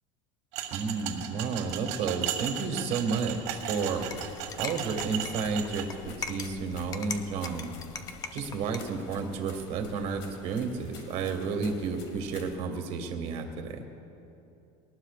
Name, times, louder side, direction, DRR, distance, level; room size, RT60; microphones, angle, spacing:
sound 1, 0.5-5.8, right 10 dB, 80° right, 1.7 m, -36 dB
voice 1, 0.7-4.1 4.6-7.7 8.3-13.8, right 5 dB, 50° right, 5 dB, 1.7 m, -31 dB
sound 2, 3.3-8.9, left 6 dB, 25° left, 0.7 m, -42 dB
sound 3, 3.5-12.5, left 3 dB, 80° left, 2.2 m, -49 dB
22.0 x 19.0 x 2.5 m, 2.8 s
cardioid pair, 160°, 15 cm